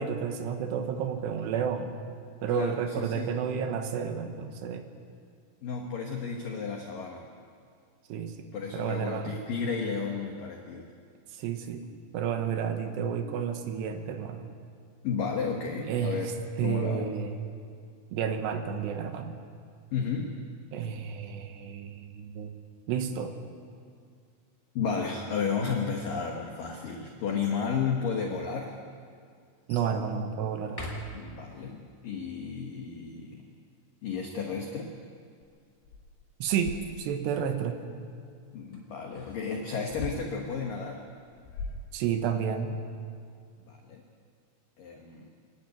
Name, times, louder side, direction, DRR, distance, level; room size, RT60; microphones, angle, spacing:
voice 1, 0.0-2.0 2.4-4.8 8.1-8.4 8.7-9.4 11.4-11.8 12.1-14.5 15.9-16.3 16.6-17.4 18.1-19.4 20.7-22.5 22.9-23.3 29.7-30.9 36.4-37.8 41.9-42.8, right 7 dB, 70° right, 6 dB, 3.0 m, -31 dB
voice 2, 2.5-3.3 5.6-7.3 8.5-10.9 15.0-16.3 16.6-17.1 19.9-20.3 24.8-28.7 31.1-33.4 34.0-34.9 38.5-41.0 43.7-44.0 44.8-45.3, left 5 dB, 65° left, 1 dB, 2.2 m, -33 dB
sound 1, 26.4-27.6 28.4-28.5 29.7-30.0 30.6-31.7 38.7-40.0, left 1 dB, 5° left, 1.7 m, -46 dB
sound 2, 35.4-35.5 35.8-37.4 39.9-40.4 41.2-42.4, left 3 dB, 90° left, 5.9 m, -40 dB
26.0 x 11.5 x 9.3 m, 2.2 s
omnidirectional pair, 5.8 m